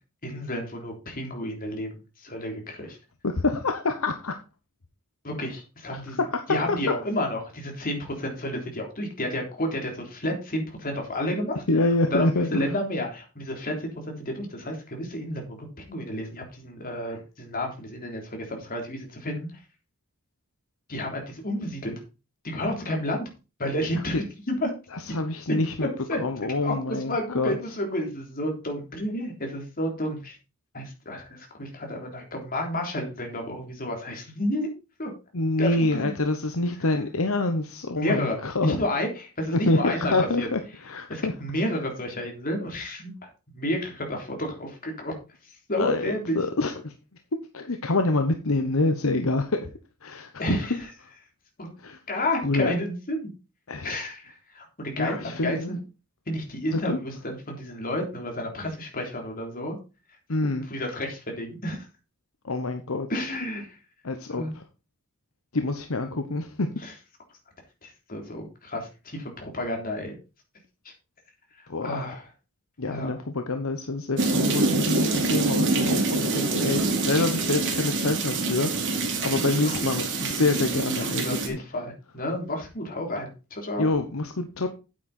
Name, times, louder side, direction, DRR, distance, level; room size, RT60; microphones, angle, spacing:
voice 1, 0.2-1.9 2.2-3.0 5.2-11.6 12.1-19.5 20.9-21.9 22.4-23.3 23.6-24.7 25.5-30.4 30.7-34.7 35.0-35.1 35.6-36.1 38.0-40.5 41.1-43.1 43.5-45.1 45.7-46.4 50.4-50.9 51.6-51.7 52.1-53.3 53.8-54.2 54.5-55.8 56.3-59.8 60.4-61.8 63.1-63.7 64.3-64.5 66.8-66.9 67.8-70.1 71.8-72.3 72.8-73.2 77.2-77.3 79.6-79.8 81.0-83.9, left 1 dB, 40° left, 2 dB, 3.5 m, -31 dB
voice 2, 3.2-4.4 6.2-6.8 11.7-12.7 24.1-24.2 24.9-25.9 26.2-27.6 35.3-38.8 39.5-41.3 45.8-46.9 47.5-49.7 50.0-50.3 51.8-52.0 52.4-52.7 53.7-54.0 55.0-55.8 56.7-57.0 60.3-60.7 62.4-63.1 64.0-64.4 65.5-66.7 71.7-72.1 72.8-79.0 79.2-81.6 83.8-84.7, left 2 dB, 65° left, 7 dB, 1.0 m, -26 dB
sound 1, 74.2-81.5, right 3 dB, 60° right, 2.6 m, -25 dB
8.9 x 8.7 x 4.3 m, 0.30 s
head